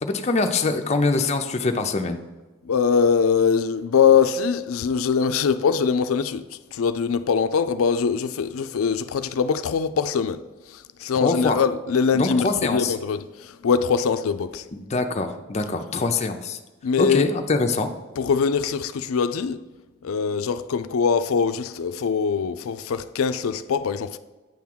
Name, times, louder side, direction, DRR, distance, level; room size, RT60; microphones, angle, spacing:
voice 1, 0.0-2.2 11.1-11.6 12.1-12.9 14.7-16.6 17.0-17.9, left 3 dB, 30° left, 0.5 m, -24 dB
voice 2, 2.6-10.4 10.7-14.6 16.8-17.3 18.2-19.6 20.0-24.2, left 6 dB, 85° left, 0.4 m, -22 dB
9.1 x 3.6 x 5.9 m
head